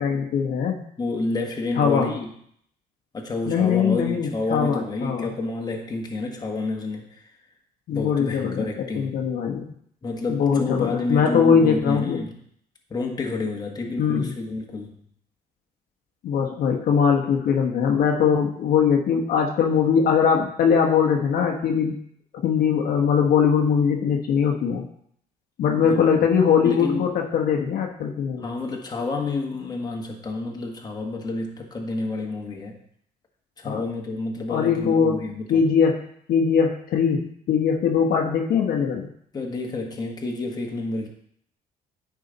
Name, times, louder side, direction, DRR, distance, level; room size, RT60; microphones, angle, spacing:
voice 1, 0.0-0.8 1.8-2.1 3.5-5.3 7.9-8.7 8.9-9.7 10.3-12.2 14.0-14.4 16.2-22.0 22.4-24.8 25.6-28.5 33.6-33.8 34.5-35.2 35.5-36.0 36.3-39.1, left 7 dB, 65° left, 1 dB, 1.1 m, -21 dB
voice 2, 1.0-2.3 3.1-7.2 7.9-9.2 10.0-12.4 12.9-15.0 25.8-26.0 26.6-27.0 28.4-32.8 33.6-35.6 39.3-41.1, left 3 dB, 25° left, 0 dB, 1.5 m, -29 dB
9.3 x 4.9 x 4.0 m, 0.67 s
cardioid pair, 110°, 17 cm